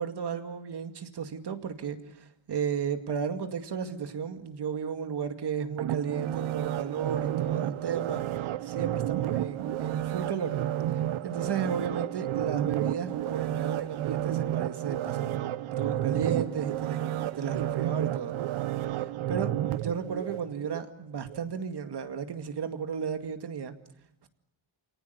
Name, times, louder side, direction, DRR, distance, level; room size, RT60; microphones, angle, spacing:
voice 1, 0.0-8.2 8.6-10.6 11.2-15.5 15.8-18.4 18.9-23.7, right 7 dB, 55° right, 7 dB, 2.3 m, -34 dB
sound 1, 5.8-20.8 21.3-21.4, right 12 dB, 90° right, 0.9 m, -31 dB
28.5 x 18.5 x 9.5 m, 0.83 s
wide cardioid pair, 175°, 47 cm